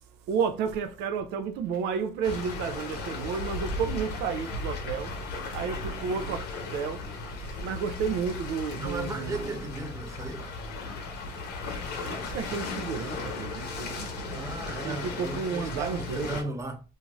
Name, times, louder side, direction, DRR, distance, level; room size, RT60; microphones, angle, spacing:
voice 1, 0.3-7.1 7.5-9.5 12.0-14.1 14.8-16.5, right 6 dB, 80° right, 0.4 m, -32 dB
sound 1, 2.2-16.4, left 3 dB, 75° left, 0.9 m, -36 dB
sound 2, 8.7-9.6 12.1-12.4, left 4 dB, 30° left, 0.5 m, -53 dB
voice 2, 8.8-10.5 14.3-16.8, right 2 dB, 20° right, 0.6 m, -35 dB
2.6 x 2.4 x 2.9 m
cardioid pair, 110°, 17 cm